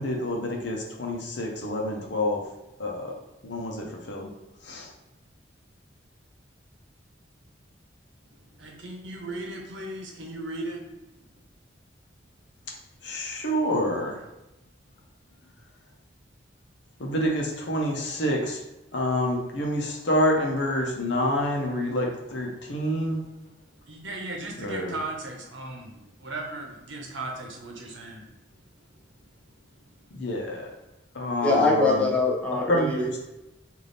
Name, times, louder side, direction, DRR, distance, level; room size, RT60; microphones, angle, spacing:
voice 1, 0.0-2.4 2.8-3.1 3.4-4.3 4.6-4.9 13.0-14.2 17.0-18.6 18.9-23.2 24.6-24.9 30.1-30.7 31.1-32.1 32.7-32.9, left 1 dB, 65° left, 0 dB, 0.8 m, -27 dB
voice 2, 8.6-10.9 23.4-23.5 23.8-28.3, right 2 dB, 75° right, 1 dB, 0.9 m, -37 dB
voice 3, 31.4-33.2, left 3 dB, 5° left, -4 dB, 0.8 m, -23 dB
3.4 x 2.6 x 4.0 m, 0.97 s
head